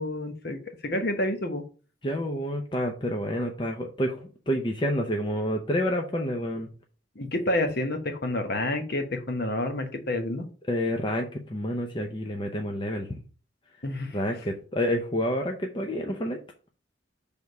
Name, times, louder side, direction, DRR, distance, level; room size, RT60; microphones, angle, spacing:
voice 1, 0.0-1.6 7.2-10.4 13.8-14.2, left 1 dB, 50° left, 5 dB, 1.1 m, -29 dB
voice 2, 2.0-4.2 4.5-6.7 10.7-13.2 14.1-16.4, equal, 25° left, 2 dB, 0.6 m, -28 dB
6.3 x 3.6 x 5.3 m, 0.38 s
head